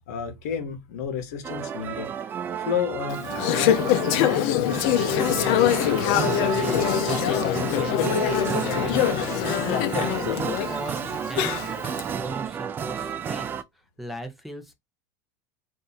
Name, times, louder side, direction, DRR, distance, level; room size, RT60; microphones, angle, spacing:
voice 1, 0.1-2.1 2.6-5.5 6.5-6.6, left 7 dB, 75° left, 0.9 m, -32 dB
sound 1, 1.4-13.6, right 8 dB, 25° right, 0.3 m, -31 dB
Conversation / Chatter, 3.1-12.0, left 10 dB, 60° left, 0.5 m, -24 dB
voice 2, 6.4-13.5 14.0-14.7, right 1 dB, ahead, 0.7 m, -39 dB
2.7 x 2.5 x 3.9 m
supercardioid pair, 125°, 9 cm